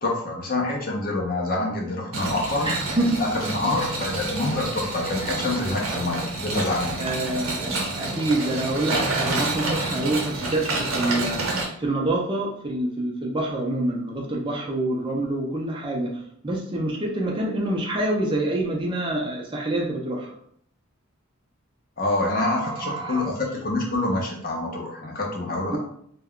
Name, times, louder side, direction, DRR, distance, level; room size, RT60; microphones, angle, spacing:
voice 1, 0.0-2.7 3.2-7.1 22.0-25.8, left 2 dB, 40° left, 0 dB, 0.6 m, -26 dB
sound 1, 2.1-11.6, right 2 dB, 80° right, 0.7 m, -28 dB
voice 2, 2.6-3.2 5.8-6.0 7.0-20.3 22.6-23.3 25.7-25.8, right 1 dB, 25° right, -2 dB, 0.4 m, -27 dB
2.2 x 2.2 x 3.6 m, 0.66 s
head